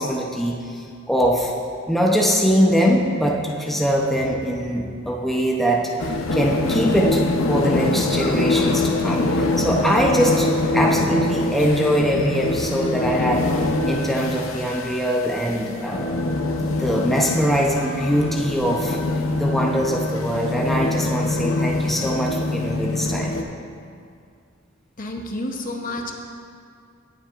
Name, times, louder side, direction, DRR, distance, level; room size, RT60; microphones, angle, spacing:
voice 1, 0.0-1.5 1.9-13.5 13.9-16.1 16.7-23.4, equal, ahead, -2 dB, 0.7 m, -22 dB
sound 1, 6.0-23.4, left 2 dB, 85° left, 0.7 m, -24 dB
voice 2, 25.0-26.1, left 1 dB, 45° left, 2 dB, 0.8 m, -29 dB
18.0 x 7.4 x 2.5 m, 2.3 s
head